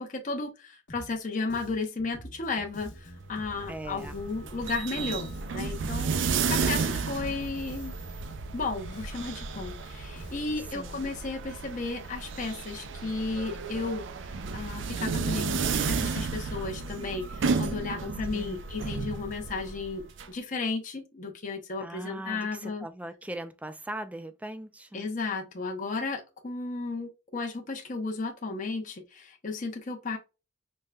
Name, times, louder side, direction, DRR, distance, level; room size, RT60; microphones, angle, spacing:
voice 1, 0.0-7.9 8.5-14.1 14.5-22.9 24.9-30.2, left 3 dB, 45° left, 0.7 m, -34 dB
Bass guitar, 0.9-1.2 1.5-6.2 6.4-10.8, equal, 75° left, 1.1 m, -47 dB
sound 1, 3.2-20.3, right 5 dB, 80° right, 0.4 m, -33 dB
voice 2, 3.7-4.2 10.7-11.1 18.3-18.6 21.8-25.1, right 1 dB, 10° right, 0.3 m, -40 dB
5.2 x 2.2 x 2.2 m
head